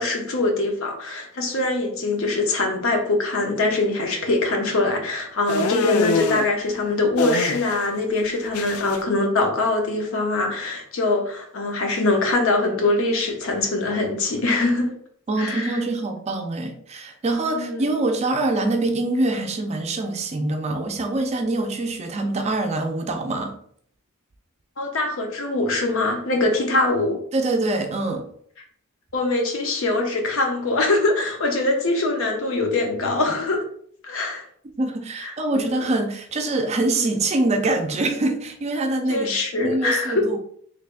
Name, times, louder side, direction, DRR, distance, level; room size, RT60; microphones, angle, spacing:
voice 1, 0.0-14.9 15.4-15.8 17.5-17.9 24.8-27.2 29.1-33.6 34.0-34.4 35.2-35.9 37.0-37.1 39.1-40.3, left 2 dB, 65° left, 2 dB, 0.8 m, -23 dB
sound 1, 5.5-6.5 7.2-9.0, left 4 dB, 80° left, 0.4 m, -24 dB
voice 2, 15.3-23.5 27.3-28.2 34.8-40.4, right 2 dB, 30° right, 5 dB, 0.4 m, -24 dB
3.4 x 3.2 x 2.4 m, 0.62 s
head